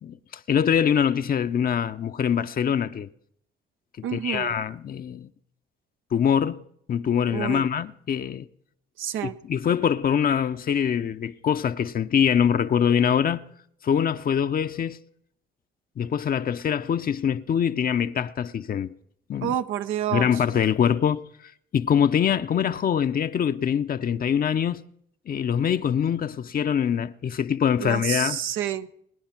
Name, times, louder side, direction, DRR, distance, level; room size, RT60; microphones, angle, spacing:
voice 1, 0.0-3.1 4.0-5.3 6.1-6.6 6.9-8.5 9.2-13.4 13.8-15.0 16.0-18.9 19.3-19.6 20.1-24.8 25.3-28.4, left 8 dB, 45° left, 0.6 m, -24 dB
voice 2, 4.0-4.5 7.3-7.7 9.0-9.4 19.4-20.3 27.8-28.9, right 10 dB, 90° right, 0.8 m, -29 dB
20.5 x 9.9 x 5.9 m
cardioid pair, 90°, 20 cm